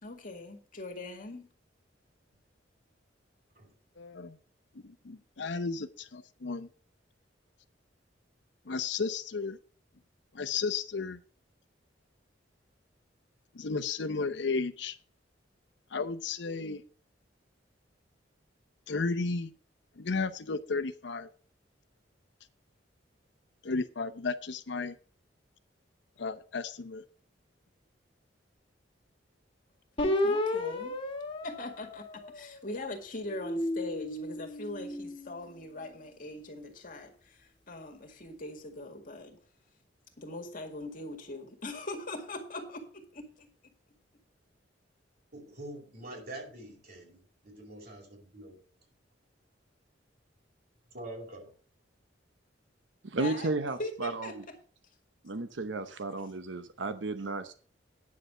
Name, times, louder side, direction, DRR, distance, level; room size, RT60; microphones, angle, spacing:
voice 1, 0.0-1.5 30.1-31.0 31.4-39.4 40.2-43.5 53.2-53.5 53.8-54.6, left 2 dB, 50° left, 3 dB, 2.0 m, -41 dB
voice 2, 4.0-4.3 4.8-6.7 8.7-9.6 10.3-11.2 13.5-15.0 15.9-16.8 18.9-19.5 20.0-21.3 23.6-24.9 26.2-27.0, left 4 dB, 65° left, 12 dB, 0.7 m, -33 dB
sound 1, 30.0-32.7 33.2-35.7, left 1 dB, 30° left, 2.1 m, -33 dB
voice 3, 45.3-48.6 50.9-51.5, right 1 dB, 55° right, 0 dB, 4.9 m, -45 dB
voice 4, 53.0-54.4 55.2-57.5, right 3 dB, 75° right, 9 dB, 0.8 m, -33 dB
9.6 x 6.7 x 6.5 m, 0.43 s
head